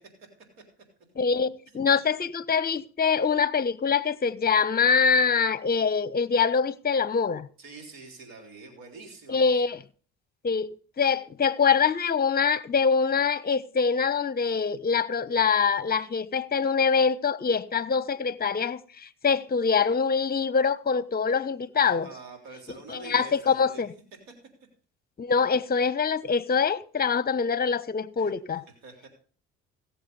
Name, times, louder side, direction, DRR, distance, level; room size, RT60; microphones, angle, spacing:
voice 1, 1.2-7.5 9.3-9.8 10.4-10.7 11.0-22.1 22.9-23.9 25.2-28.6, left 5 dB, 30° left, 0.9 m, -24 dB
voice 2, 7.6-9.4 21.7-23.8 28.2-28.3 28.8-29.1, right 3 dB, 80° right, 3.6 m, -45 dB
16.0 x 7.4 x 5.4 m
hypercardioid pair, 65°, 33 cm